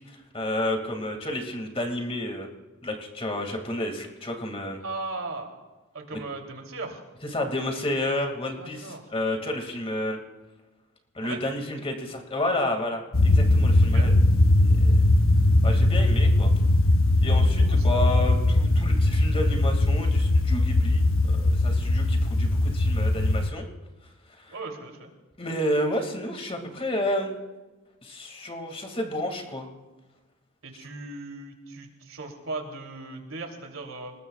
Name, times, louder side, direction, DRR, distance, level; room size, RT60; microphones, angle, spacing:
voice 1, 0.1-2.5 2.8-4.8 6.1-6.2 7.3-10.2 11.1-14.1 14.8-15.0 15.6-16.5 17.2-23.6 24.4-24.5 25.4-27.4 28.0-29.7, left 1 dB, 25° left, 3 dB, 2.2 m, -30 dB
voice 2, 4.8-5.5 5.9-7.0 8.6-9.1 11.2-11.5 13.8-14.1 17.6-18.1 24.5-25.1 30.6-34.1, right 3 dB, 75° right, 2 dB, 3.1 m, -37 dB
sound 1, 13.1-23.5, left 1 dB, 70° left, 0.8 m, -20 dB
28.0 x 20.0 x 2.4 m, 1.2 s
head